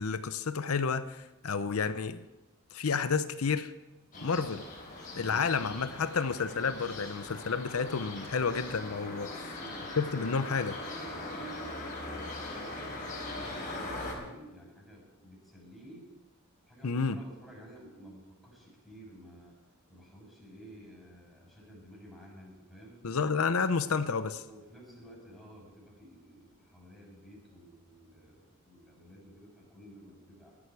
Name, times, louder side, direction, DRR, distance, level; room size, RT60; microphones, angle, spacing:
voice 1, 0.0-2.2 2.7-3.7 4.2-4.6 5.2-9.3 10.0-10.8 16.8-17.2 23.0-24.4, left 5 dB, 90° left, 11 dB, 0.7 m, -30 dB
sound 1, 4.1-14.1, left 2 dB, 40° left, 4.7 m, -41 dB
voice 2, 4.1-4.5 5.1-5.8 9.3-9.9 11.0-16.1 16.7-19.5 19.9-23.0 24.4-30.5, equal, ahead, -3 dB, 6.5 m, -52 dB
17.5 x 13.0 x 4.7 m, 1.0 s
head